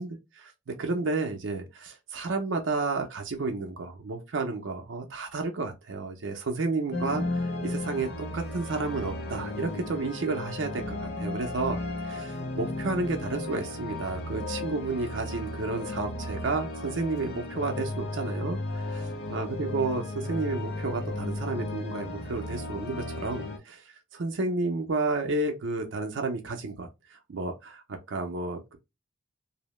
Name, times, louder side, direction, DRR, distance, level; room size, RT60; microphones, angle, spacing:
voice 1, 0.0-11.8 12.0-19.0 19.3-28.8, right 3 dB, 85° right, 0.5 m, -31 dB
sound 1, 6.9-23.6, left 2 dB, 55° left, 0.5 m, -35 dB
2.7 x 2.0 x 3.0 m
head